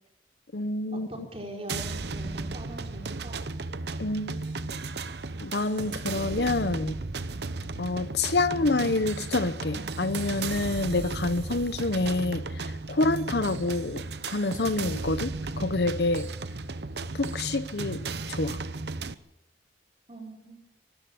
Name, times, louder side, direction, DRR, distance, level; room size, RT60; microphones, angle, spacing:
voice 1, 0.5-1.1 4.0-4.4 4.7-4.8 5.4-6.9 7.8-16.3 17.1-18.0 18.3-18.6, left 2 dB, 60° left, 0.9 m, -27 dB
voice 2, 1.1-3.4 20.1-20.6, right 1 dB, 35° right, 5.4 m, -41 dB
sound 1, 1.7-19.1, right 3 dB, 65° right, 0.9 m, -35 dB
23.5 x 13.0 x 8.8 m
head